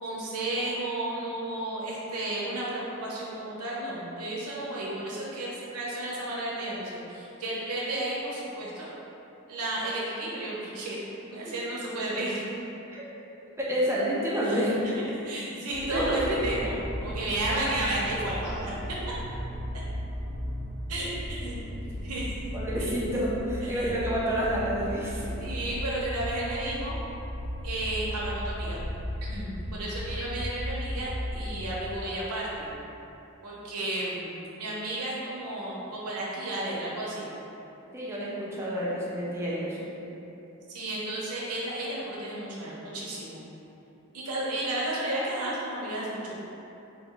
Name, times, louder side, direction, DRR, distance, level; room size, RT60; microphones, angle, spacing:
voice 1, 0.0-8.9 9.5-11.0 11.3-12.4 14.4-16.8 17.0-18.8 19.1-19.2 20.9-21.6 22.0-22.3 22.8-23.1 23.6-23.9 25.4-27.0 27.6-28.8 29.3-32.7 33.4-37.3 40.7-43.4 44.1-46.4, right 1 dB, 85° right, -6 dB, 0.8 m, -33 dB
voice 2, 13.6-14.9 15.9-16.4 22.5-25.3 37.9-39.8, equal, 10° right, -7 dB, 0.5 m, -29 dB
sound 1, 15.7-31.9, equal, 15° left, 0.8 m, -36 dB
3.5 x 2.2 x 3.7 m, 2.9 s
head